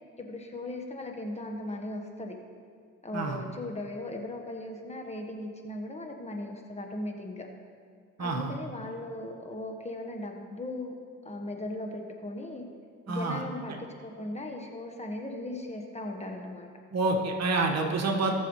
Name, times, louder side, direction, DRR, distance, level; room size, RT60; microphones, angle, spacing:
voice 1, 0.2-2.4 3.0-7.5 8.2-11.0 11.2-12.7 13.1-16.7, left 1 dB, 20° left, 2 dB, 1.3 m, -38 dB
voice 2, 8.2-8.5 13.1-13.4 16.9-18.4, right 3 dB, 60° right, 1 dB, 1.5 m, -28 dB
18.5 x 7.0 x 3.2 m, 2.1 s
cardioid pair, 90°, 30 cm